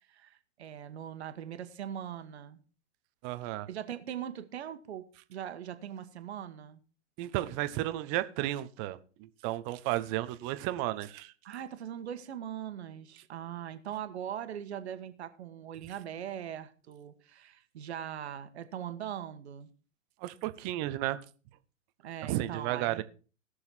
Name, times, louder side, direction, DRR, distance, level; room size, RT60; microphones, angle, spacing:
voice 1, 0.1-2.6 3.7-6.8 11.4-19.7 22.0-23.0, right 10 dB, 55° right, 1.4 m, -41 dB
voice 2, 3.2-3.7 7.2-11.3 20.2-21.2 22.2-23.0, right 15 dB, 25° right, 0.7 m, -33 dB
17.5 x 6.6 x 4.4 m
figure-of-eight pair, 115°, 40 cm